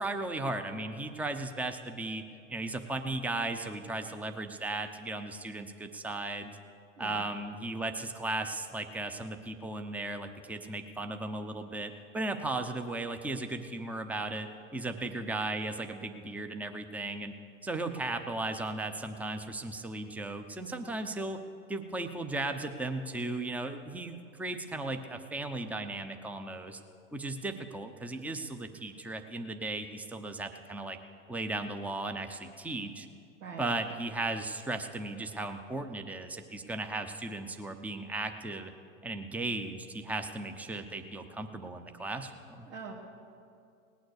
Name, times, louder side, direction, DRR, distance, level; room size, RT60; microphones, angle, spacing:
voice 1, 0.0-2.2 2.5-6.5 7.0-17.3 17.6-21.4 21.7-26.8 27.1-31.0 31.3-33.1 33.6-38.7 39.0-42.7, right 2 dB, 5° right, 6 dB, 0.7 m, -36 dB
voice 2, 7.0-7.2 33.4-33.7 42.6-42.9, right 6 dB, 85° right, -5 dB, 1.9 m, -42 dB
18.5 x 9.3 x 6.5 m, 2.4 s
hypercardioid pair, 105°, 39 cm